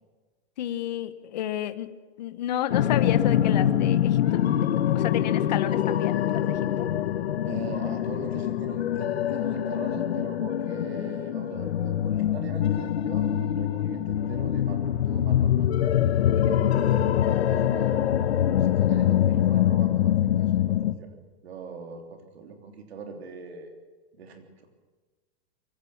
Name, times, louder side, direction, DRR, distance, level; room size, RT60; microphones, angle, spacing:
voice 1, 0.6-1.9 2.2-4.4 4.9-6.9, left 11 dB, 45° left, 11 dB, 1.1 m, -31 dB
sound 1, 2.7-20.9, left 11 dB, 75° left, 1.2 m, -24 dB
voice 2, 7.4-15.9 16.3-17.0 17.5-18.0 18.5-23.7 24.1-24.8, right 4 dB, 75° right, 4 dB, 3.4 m, -41 dB
23.0 x 16.0 x 7.2 m, 1.3 s
supercardioid pair, 180°, 32 cm